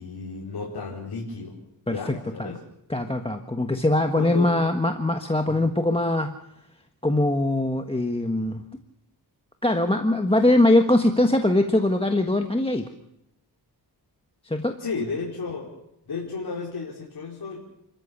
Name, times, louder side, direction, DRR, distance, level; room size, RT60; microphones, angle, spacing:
voice 1, 0.0-1.6 1.9-2.6 4.1-4.5 5.4-5.7 14.8-15.7 16.0-17.7, left 4 dB, 70° left, -4 dB, 4.9 m, -33 dB
voice 2, 2.9-6.3 7.0-8.6 9.6-12.9 14.4-14.8, left 1 dB, 15° left, 5 dB, 1.4 m, -22 dB
30.0 x 14.0 x 7.2 m, 0.81 s
wide cardioid pair, 110°, 40 cm